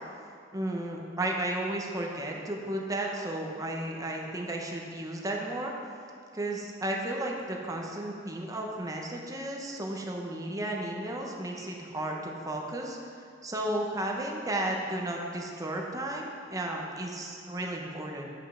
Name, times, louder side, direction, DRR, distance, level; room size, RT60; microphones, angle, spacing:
voice 1, 0.5-5.7 6.3-13.0 13.4-18.3, right 1 dB, 20° right, 0 dB, 0.9 m, -33 dB
8.0 x 5.4 x 6.2 m, 2.3 s
head